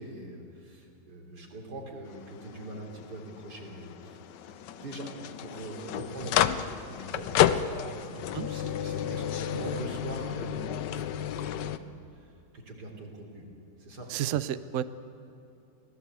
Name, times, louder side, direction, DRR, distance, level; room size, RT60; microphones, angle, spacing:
voice 1, 0.0-4.2 4.5-5.1 5.4-7.3 7.7-12.3 12.5-13.5 13.8-14.1, right 2 dB, 55° right, 0 dB, 3.9 m, -42 dB
sound 1, 2.1-11.8, left 10 dB, 70° left, 1.2 m, -31 dB
voice 2, 14.1-14.8, right 11 dB, 80° right, 13 dB, 0.6 m, -30 dB
24.0 x 17.5 x 8.2 m, 2.7 s
omnidirectional pair, 2.2 m